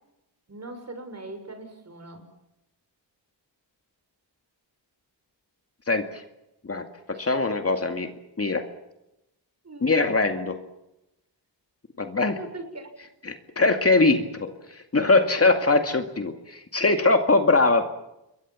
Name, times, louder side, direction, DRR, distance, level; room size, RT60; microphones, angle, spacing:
voice 1, 0.5-2.2 7.1-7.3 9.6-9.9 12.3-12.9, right 2 dB, 35° right, 7 dB, 6.4 m, -40 dB
voice 2, 6.6-8.1 8.4-8.6 9.8-10.6 12.0-12.4 13.3-14.5 14.9-17.9, left 3 dB, 35° left, 6 dB, 2.3 m, -22 dB
27.5 x 22.0 x 7.4 m, 0.89 s
wide cardioid pair, 95°, 43 cm